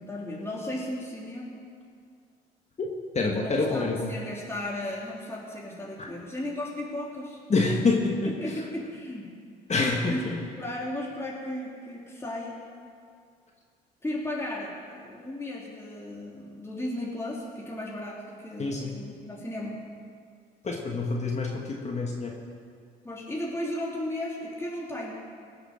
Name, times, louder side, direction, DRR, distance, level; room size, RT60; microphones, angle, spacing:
voice 1, 0.0-1.6 3.2-7.4 8.2-9.3 10.1-12.6 14.0-19.8 23.0-25.1, left 1 dB, 15° left, -4 dB, 3.0 m, -35 dB
voice 2, 3.1-4.1 6.0-6.1 7.5-8.3 9.7-10.2 18.6-18.9 20.6-22.3, left 3 dB, 35° left, 0 dB, 1.8 m, -26 dB
19.0 x 6.6 x 6.5 m, 2.2 s
supercardioid pair, 70°, 19 cm